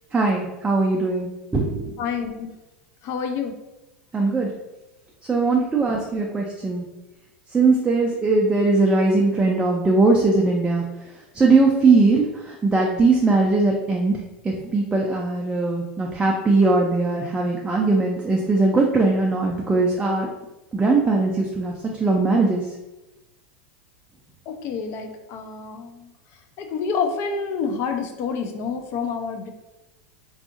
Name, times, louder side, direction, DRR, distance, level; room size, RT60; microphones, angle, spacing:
voice 1, 0.1-2.0 4.1-4.6 5.3-6.8 7.5-10.8 11.3-20.3 20.7-22.6, right 3 dB, 15° right, 0 dB, 0.3 m, -20 dB
voice 2, 2.0-2.5 3.0-3.5 5.6-5.7 24.5-26.1 26.6-29.5, left 5 dB, 45° left, 5 dB, 0.4 m, -28 dB
2.6 x 2.4 x 2.4 m, 1.0 s
hypercardioid pair, 90°, 6 cm